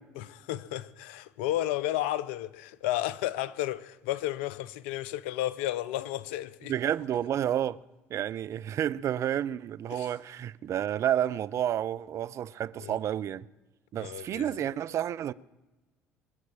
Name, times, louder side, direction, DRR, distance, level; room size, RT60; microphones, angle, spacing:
voice 1, 0.2-6.7 9.9-10.1 12.8-13.0 14.0-14.5, left 14 dB, 80° left, 0.6 m, -32 dB
voice 2, 6.7-7.8 8.1-13.5 13.9-15.3, right 10 dB, 50° right, 0.5 m, -30 dB
22.5 x 7.6 x 7.4 m
hypercardioid pair, 60°, 6 cm